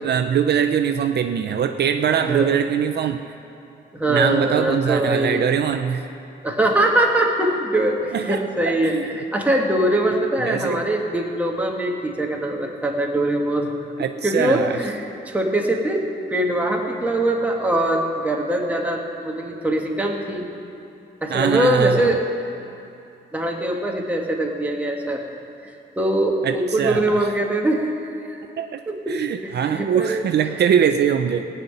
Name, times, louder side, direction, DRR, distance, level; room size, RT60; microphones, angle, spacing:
voice 1, 0.0-3.2 4.1-6.1 8.1-8.4 8.7-9.1 10.4-10.8 14.0-14.8 21.3-22.2 26.4-27.3 28.6-28.8 29.1-31.5, right 8 dB, 60° right, 7 dB, 0.5 m, -22 dB
voice 2, 2.2-2.5 3.9-5.6 6.4-13.7 14.2-16.0 16.3-20.5 21.2-22.2 23.3-25.2 25.6-27.9 28.2-28.4 28.9-29.1 29.4-30.2, right 1 dB, 10° right, 0 dB, 1.5 m, -22 dB
17.0 x 5.7 x 9.3 m, 2.7 s
cardioid pair, 125°, 19 cm